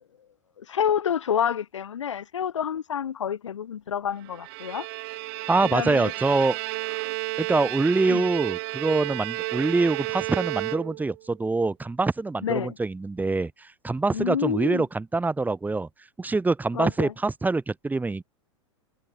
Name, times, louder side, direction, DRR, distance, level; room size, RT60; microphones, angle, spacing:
voice 1, 0.6-4.9 5.7-6.1 8.1-8.3 12.4-12.8 14.1-14.8 16.7-17.1, left 8 dB, 80° left, 2.2 m, -28 dB
Bowed string instrument, 4.2-11.2, right 27 dB, 55° right, 2.4 m, -32 dB
voice 2, 5.5-6.6 7.4-15.9 16.2-18.2, right 3 dB, 10° right, 7.8 m, -25 dB
hypercardioid pair, 95°, 15 cm